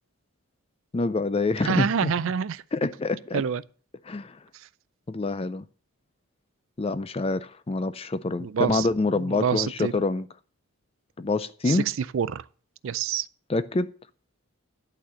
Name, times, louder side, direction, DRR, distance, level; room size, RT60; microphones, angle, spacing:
voice 1, 0.9-2.1 2.7-3.4 4.0-4.4 5.1-5.7 6.8-10.3 11.2-11.9 13.5-13.9, left 3 dB, 25° left, 0.4 m, -26 dB
voice 2, 1.6-2.6 3.3-3.6 8.4-8.9 9.1-9.9 11.7-11.8 12.1-12.4 12.8-13.3, right 7 dB, 60° right, 0.4 m, -26 dB
11.0 x 4.2 x 7.5 m
head